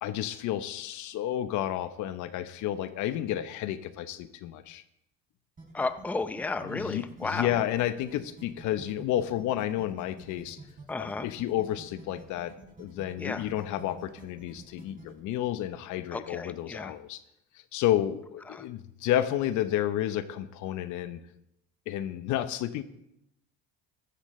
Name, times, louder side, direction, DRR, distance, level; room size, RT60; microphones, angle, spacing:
voice 1, 0.0-4.8 6.6-10.6 11.0-12.5 12.8-17.2 17.7-21.2 21.9-22.8, left 12 dB, 65° left, 12 dB, 1.0 m, -31 dB
sound 1, 5.6-15.2, right 2 dB, 25° right, 4.4 m, -49 dB
voice 2, 5.7-7.5 10.9-11.3 13.2-13.5 16.1-16.9 18.5-18.6, left 3 dB, 5° left, 10 dB, 0.6 m, -33 dB
14.5 x 11.5 x 3.2 m, 0.80 s
supercardioid pair, 95°, 32 cm